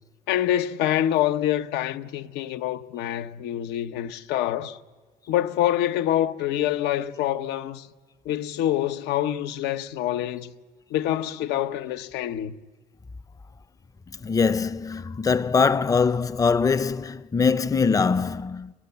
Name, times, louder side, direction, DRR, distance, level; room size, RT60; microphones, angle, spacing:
voice 1, 0.3-4.8 5.3-7.9 8.2-10.5 10.9-12.5, left 12 dB, 90° left, 1.1 m, -26 dB
voice 2, 14.1-18.7, left 5 dB, 20° left, 0.6 m, -22 dB
29.0 x 21.0 x 7.0 m
cardioid pair, 110°, 17 cm